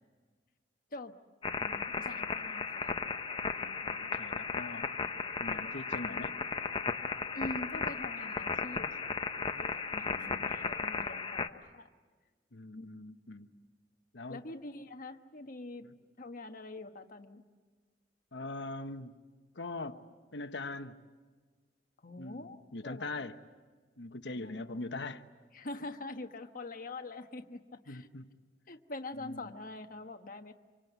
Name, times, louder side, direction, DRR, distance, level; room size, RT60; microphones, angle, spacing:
sound 1, 1.4-11.5, left 4 dB, 30° left, 1.0 m, -35 dB
voice 1, 1.6-3.0 7.3-11.9 12.8-12.9 14.3-15.9 16.2-17.4 22.0-22.6 22.8-23.1 24.3-24.8 25.5-28.1 28.7-30.5, left 2 dB, 50° left, 6 dB, 1.3 m, -44 dB
voice 2, 3.6-4.9 5.4-6.4 10.0-10.5 12.5-13.5 14.1-14.4 15.8-16.0 18.3-19.1 19.5-20.0 20.3-21.0 22.2-23.4 24.0-25.2 27.9-28.3 29.1-29.5, left 2 dB, 75° left, 8 dB, 1.2 m, -42 dB
26.5 x 25.0 x 8.2 m, 1.4 s
head